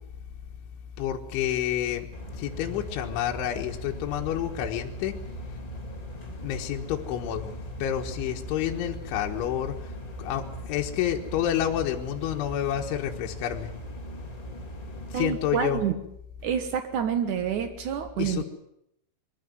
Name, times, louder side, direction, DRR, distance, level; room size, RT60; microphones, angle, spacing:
voice 1, 1.0-2.1 2.4-5.1 5.9-6.0 6.4-7.5 7.8-9.7 10.2-13.7 15.1-15.8 18.2-18.4, left 11 dB, 75° left, 2 dB, 3.7 m, -29 dB
sound 1, 2.1-15.4, right 2 dB, 55° left, 0.4 m, -40 dB
voice 2, 15.1-16.0 16.4-18.4, right 8 dB, 80° right, 8 dB, 1.7 m, -28 dB
22.0 x 15.0 x 9.5 m, 0.78 s
omnidirectional pair, 5.7 m